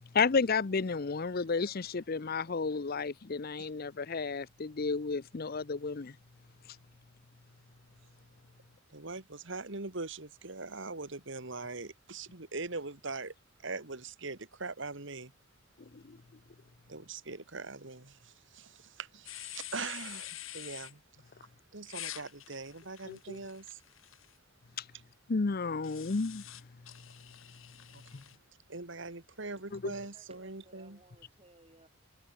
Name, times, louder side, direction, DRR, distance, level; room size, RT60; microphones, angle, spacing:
voice 1, 0.1-6.2 15.9-16.2 23.1-23.4 24.8-24.9 25.3-26.4 28.1-28.2 29.7-29.9, left 4 dB, 45° left, 0.6 m, -32 dB
voice 2, 0.7-1.8 2.2-2.6 29.6-31.9, right 2 dB, 30° right, 6.5 m, -63 dB
voice 3, 8.9-13.3 13.6-15.3 16.9-21.0 21.7-23.8 27.9-28.0 28.7-31.0, right 3 dB, 60° right, 2.1 m, -42 dB
sound 1, 19.3-20.9 21.9-24.3 25.8-28.4, left 13 dB, 75° left, 4.0 m, -46 dB
head